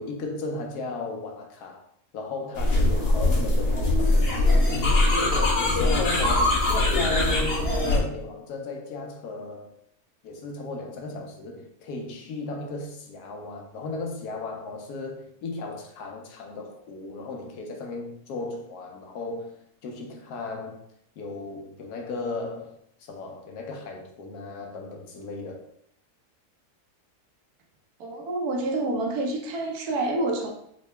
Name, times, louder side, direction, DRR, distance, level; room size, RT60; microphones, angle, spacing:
voice 1, 0.0-1.8 2.1-4.7 5.8-6.6 6.9-9.7 10.2-20.8 21.2-25.6, left 3 dB, 75° left, 1.2 m, -35 dB
sound 1, 2.6-8.0, left 2 dB, 45° left, 1.0 m, -22 dB
voice 2, 28.0-30.5, right 2 dB, 75° right, 1.1 m, -28 dB
3.8 x 2.1 x 3.2 m
omnidirectional pair, 1.7 m